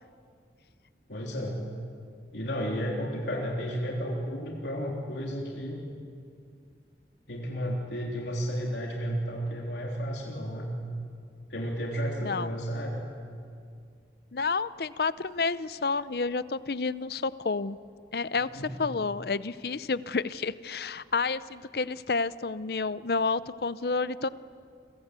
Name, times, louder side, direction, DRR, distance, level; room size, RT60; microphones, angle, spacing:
voice 1, 1.1-1.6 2.3-5.8 7.3-10.8 11.5-13.0 18.6-18.8, equal, 80° left, -2 dB, 3.5 m, -32 dB
voice 2, 14.3-17.8 18.1-24.3, left 4 dB, 60° left, 16 dB, 0.6 m, -30 dB
30.0 x 23.0 x 8.2 m, 2.3 s
head